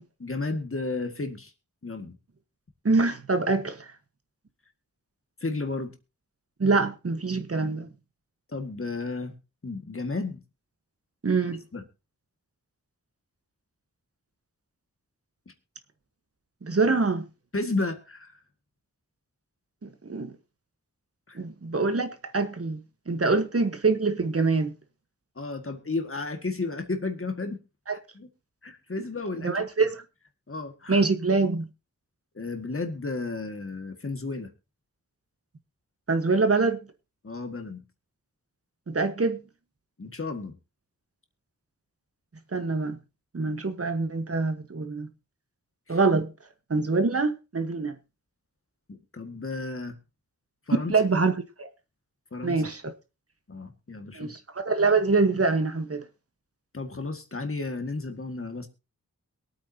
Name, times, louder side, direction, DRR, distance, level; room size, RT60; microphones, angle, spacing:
voice 1, 0.2-1.5 1.8-2.2 5.4-5.9 8.5-9.3 9.6-10.4 11.7-11.8 15.5-15.6 17.5-18.3 21.3-21.4 25.4-27.6 27.9-28.3 28.6-29.6 30.5-31.0 32.4-34.5 37.2-37.8 40.0-40.5 45.9-46.0 48.9-50.0 50.7-50.9 52.3-52.6 53.5-54.3 56.7-58.7, left 3 dB, 40° left, 1.9 m, -33 dB
voice 2, 2.8-3.9 6.6-7.9 11.2-11.6 16.6-17.2 19.8-20.3 21.3-24.7 27.9-28.0 29.4-30.0 30.9-31.7 36.1-36.8 38.9-39.4 42.5-43.0 43.3-45.1 45.9-46.3 46.7-48.0 50.9-51.3 51.6-51.7 52.4-52.9 54.1-56.0, right 3 dB, 45° right, 1.3 m, -25 dB
22.5 x 8.6 x 2.8 m
wide cardioid pair, 60°, 33 cm